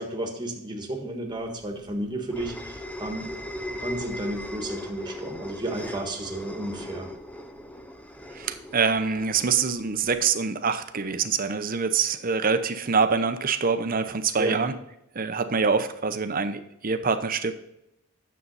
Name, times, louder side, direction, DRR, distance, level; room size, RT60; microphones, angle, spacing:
voice 1, 0.0-3.3 3.6-7.1 14.4-14.7, right 1 dB, 20° right, 2 dB, 1.5 m, -33 dB
sound 1, 1.4-10.3, equal, 5° left, 0.5 m, -38 dB
voice 2, 8.3-14.7 15.1-17.5, right 5 dB, 40° right, 9 dB, 0.7 m, -25 dB
9.7 x 7.3 x 4.1 m, 0.82 s
head